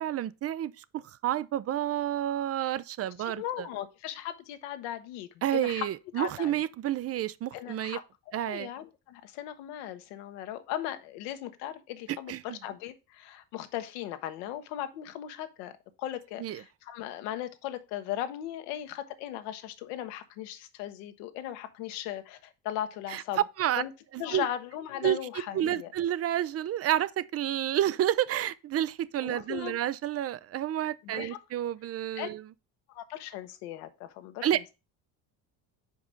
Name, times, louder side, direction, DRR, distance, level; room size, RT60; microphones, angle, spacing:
voice 1, 0.0-3.4 5.4-8.0 8.3-8.7 12.1-12.6 16.4-16.6 23.1-23.2 23.6-23.8 24.3-24.5 25.0-25.2 25.5-32.4 34.4-34.6, right 12 dB, 35° right, 0.4 m, -30 dB
voice 2, 3.2-5.9 6.2-6.6 7.5-15.7 16.0-23.4 23.8-23.9 24.2-25.9 29.2-29.7 31.0-31.4 32.1-32.3 32.9-34.7, left 12 dB, 80° left, 1.1 m, -38 dB
5.2 x 4.9 x 5.3 m
supercardioid pair, 80°, 46 cm